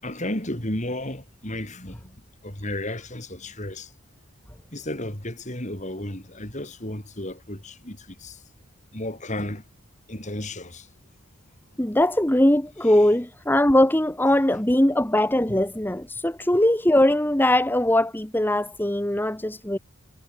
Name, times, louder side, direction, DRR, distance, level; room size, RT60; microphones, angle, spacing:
voice 1, 0.0-2.2 2.4-3.9 4.7-8.4 8.9-9.6 10.1-10.9 15.5-15.6, left 1 dB, 35° left, 4.9 m, -33 dB
voice 2, 11.8-19.8, left 1 dB, 10° left, 1.1 m, -21 dB
head